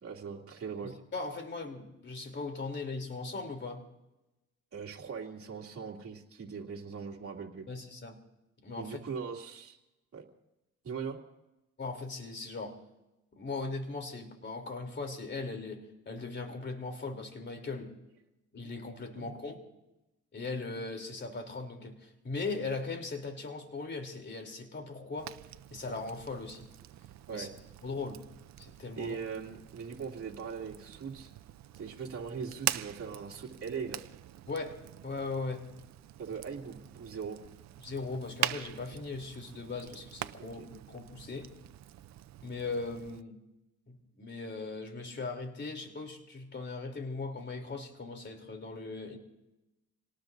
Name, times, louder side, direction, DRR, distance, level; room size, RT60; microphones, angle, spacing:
voice 1, 0.0-0.9 4.7-7.7 8.8-9.8 10.1-10.2 10.8-11.2 19.2-19.3 27.3-27.5 29.0-31.3 31.7-34.0 36.2-37.4 40.4-40.7, right 6 dB, 50° right, -1 dB, 2.6 m, -40 dB
voice 2, 1.1-3.9 7.7-8.2 8.6-9.0 11.8-12.8 13.3-17.9 18.5-19.6 20.3-25.3 25.7-26.7 27.3-27.5 27.8-28.2 28.6-29.2 34.5-34.8 35.0-35.7 37.8-41.5 42.4-43.4 43.9-49.2, left 3 dB, 35° left, 3 dB, 3.3 m, -39 dB
Fire, 25.2-43.2, right 12 dB, 65° right, 0.6 m, -43 dB
28.0 x 18.5 x 2.7 m, 0.96 s
cardioid pair, 90°, 30 cm